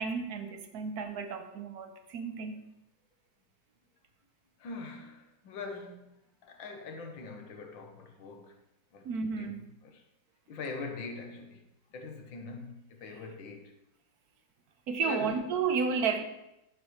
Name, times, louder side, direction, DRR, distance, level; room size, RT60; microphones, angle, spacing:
voice 1, 0.0-2.6 9.0-9.7 14.9-16.2, right 5 dB, 60° right, 1.2 m, -32 dB
voice 2, 4.6-8.6 8.9-9.5 9.8-10.0 10.5-11.6 11.9-13.7 15.0-15.4, left 3 dB, 70° left, 1.8 m, -43 dB
11.5 x 9.5 x 3.2 m
omnidirectional pair, 2.2 m